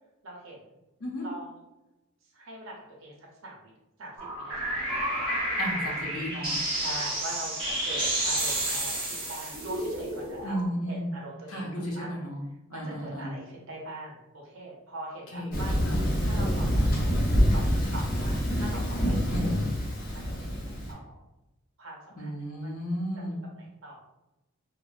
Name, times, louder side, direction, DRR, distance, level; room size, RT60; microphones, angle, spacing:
voice 1, 0.2-0.8 1.2-1.6 2.3-3.7 4.0-5.2 5.8-6.3 6.7-10.6 10.9-12.1 12.7-15.8 16.2-19.6 20.1-21.2 21.8-22.7 23.1-24.0, right 1 dB, 70° right, -2 dB, 0.6 m, -43 dB
sound 1, 4.2-10.6, right 1 dB, 25° right, 0.8 m, -30 dB
voice 2, 5.6-6.6 10.4-11.1 11.5-12.4 12.7-13.3 15.3-16.0 19.3-19.6 22.2-23.4, equal, 85° left, -1 dB, 0.7 m, -33 dB
Thunder, 15.5-20.9, equal, 45° left, 0.6 m, -26 dB
3.1 x 2.1 x 2.4 m, 0.96 s
head